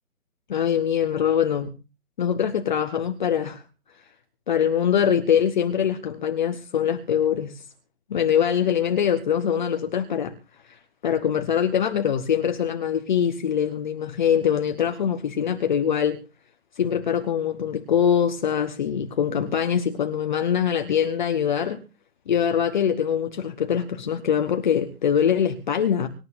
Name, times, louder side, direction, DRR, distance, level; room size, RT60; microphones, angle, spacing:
voice 1, 0.5-1.7 2.2-3.6 4.5-7.5 8.1-10.3 11.0-16.2 16.8-21.8 22.3-26.1, left 8 dB, 30° left, 1.1 m, -23 dB
25.0 x 12.0 x 2.6 m
figure-of-eight pair, 145°, 44 cm